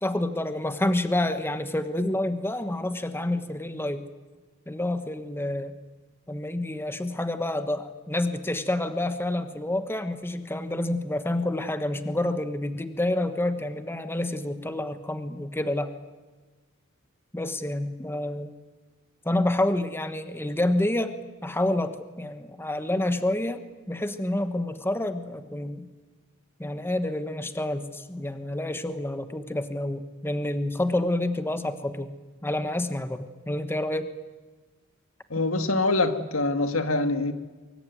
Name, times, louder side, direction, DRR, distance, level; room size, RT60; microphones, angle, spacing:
voice 1, 0.0-4.1 4.7-5.8 6.3-15.9 17.3-18.5 19.2-21.1 21.4-25.9 26.6-32.1 32.4-34.1, left 1 dB, 10° left, 1.3 m, -28 dB
voice 2, 35.3-37.3, left 2 dB, 80° left, 2.0 m, -24 dB
24.0 x 23.0 x 9.3 m
head